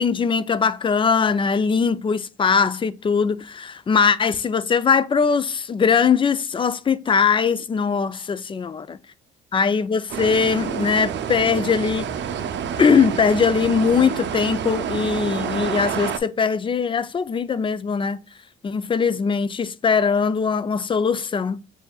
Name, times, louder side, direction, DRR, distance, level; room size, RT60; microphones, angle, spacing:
voice 1, 0.0-8.8 9.5-12.1 12.8-18.2 18.6-21.6, left 6 dB, 25° left, 0.4 m, -21 dB
sound 1, 10.1-16.2, right 8 dB, 65° right, 0.6 m, -28 dB
7.0 x 2.7 x 2.3 m
cardioid pair, 90°, 20 cm